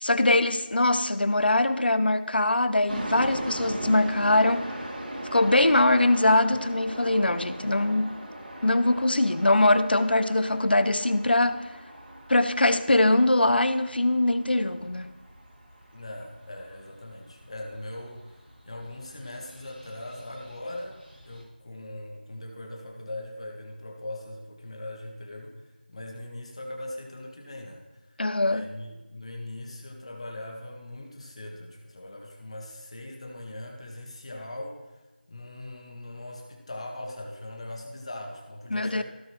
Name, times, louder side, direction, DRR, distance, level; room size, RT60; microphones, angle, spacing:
voice 1, 0.0-4.7 5.3-8.2 8.6-11.6 12.3-15.1 28.2-28.7 38.7-39.0, left 2 dB, 70° left, 0.7 m, -22 dB
sound 1, 2.9-21.4, right 1 dB, 85° right, 2.6 m, -40 dB
voice 2, 15.9-28.2 28.4-35.0 35.3-39.0, left 1 dB, 35° left, 1.6 m, -40 dB
16.0 x 5.8 x 3.1 m
figure-of-eight pair, 175°, 5 cm